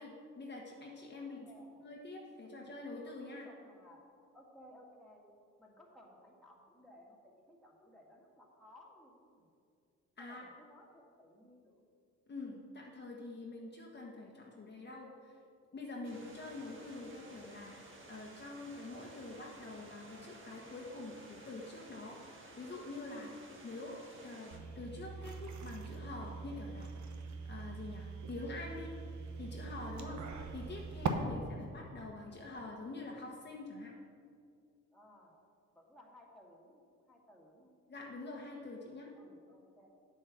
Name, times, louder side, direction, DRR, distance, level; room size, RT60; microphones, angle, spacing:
voice 1, 0.0-1.5 1.8-3.5 10.2-10.4 12.3-15.4 15.7-23.3 23.6-26.9 27.4-28.9 29.4-30.2 30.5-33.9 37.9-39.1, left 2 dB, 35° left, -2 dB, 1.4 m, -46 dB
voice 2, 1.1-1.9 2.4-2.7 3.4-4.0 4.3-5.3 5.6-9.5 10.2-11.9 34.9-35.3 35.7-37.7 39.1-39.9, left 1 dB, ahead, -3 dB, 2.1 m, -60 dB
sound 1, 16.0-24.6, right 2 dB, 40° right, 1.7 m, -55 dB
sound 2, 24.5-31.1, right 6 dB, 70° right, 1.0 m, -42 dB
8.0 x 7.8 x 6.1 m, 2.3 s
cardioid pair, 90°, 30 cm